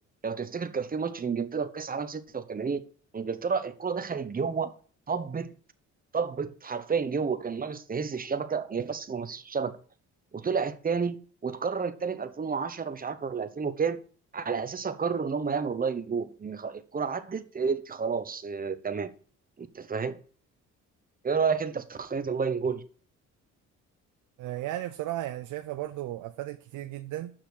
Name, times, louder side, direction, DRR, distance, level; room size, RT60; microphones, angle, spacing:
voice 1, 0.2-2.8 3.1-4.7 5.1-5.5 6.1-9.8 10.3-11.1 11.4-14.0 14.3-19.1 19.6-20.2 21.2-22.8, right 5 dB, 30° right, 1.1 m, -30 dB
voice 2, 24.4-27.3, right 14 dB, 85° right, 0.7 m, -35 dB
7.0 x 5.9 x 6.5 m
cardioid pair, 90°, 30 cm